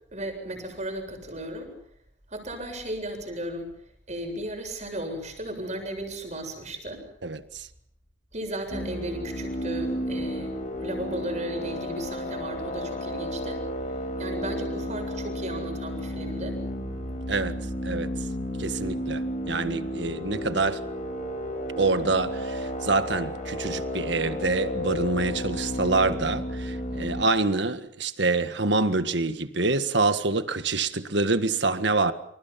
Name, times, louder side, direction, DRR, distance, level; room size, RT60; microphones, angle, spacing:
voice 1, 0.1-1.7 2.3-3.7 4.1-7.0 8.3-10.5 10.8-13.6 14.2-16.6, right 1 dB, 40° right, 7.6 m, -35 dB
voice 2, 7.2-7.7 17.3-17.5 17.8-18.1 18.6-20.8 21.8-32.1, right 3 dB, 65° right, 1.7 m, -26 dB
sound 1, 8.7-27.2, equal, 40° left, 5.5 m, -32 dB
29.5 x 27.0 x 5.9 m
head